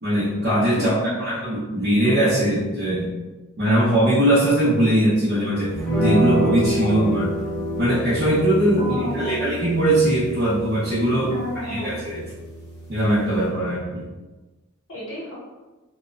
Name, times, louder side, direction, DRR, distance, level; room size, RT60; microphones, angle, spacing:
voice 1, 0.0-3.1 3.6-7.3 7.8-11.3 11.6-12.2 12.9-14.1, right 1 dB, 50° right, -11 dB, 0.7 m, -21 dB
voice 2, 0.8-1.3 8.8-9.5 11.3-12.0 14.9-15.3, left 1 dB, 65° left, -6 dB, 0.9 m, -31 dB
sound 1, 5.7-13.5, right 1 dB, ahead, 1.0 m, -28 dB
2.8 x 2.2 x 2.4 m, 1.2 s
head